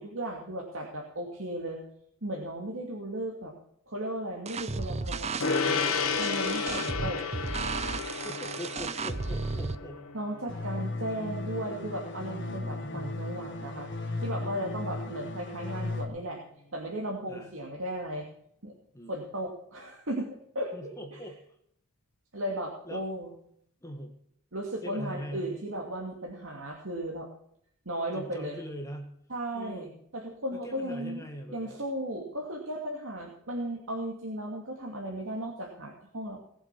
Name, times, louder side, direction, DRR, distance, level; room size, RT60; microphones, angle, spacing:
voice 1, 0.0-1.8 2.2-3.5 3.9-5.9 6.2-7.2 10.1-13.9 14.2-16.4 16.7-18.3 18.6-18.7 19.1-21.2 22.3-23.3 24.5-27.3 27.9-28.6 29.3-31.2 31.5-36.5, right 1 dB, 65° right, -1 dB, 2.5 m, -36 dB
sound 1, 4.5-9.8, right 4 dB, 30° right, 0.6 m, -34 dB
Gong, 5.4-15.1, left 5 dB, 80° left, 1.4 m, -34 dB
voice 2, 8.2-10.1 12.4-13.2 17.3-17.5 18.9-19.1 20.7-21.4 22.9-23.1 23.8-24.2 24.8-25.5 28.1-29.2 29.5-29.9 30.5-31.8, equal, 15° left, 4 dB, 1.7 m, -42 dB
sound 2, 10.5-16.0, left 2 dB, 55° left, 1.9 m, -36 dB
19.0 x 7.6 x 6.1 m, 0.67 s
head